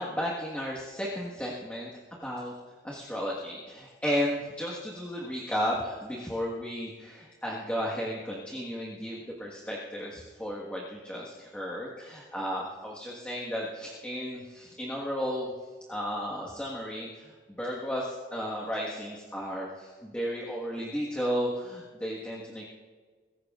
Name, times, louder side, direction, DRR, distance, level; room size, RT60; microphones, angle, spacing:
voice 1, 0.0-1.9 2.2-2.5 2.8-15.5 15.9-22.7, equal, 5° left, -4 dB, 1.5 m, -34 dB
22.5 x 17.0 x 2.5 m, 1.5 s
head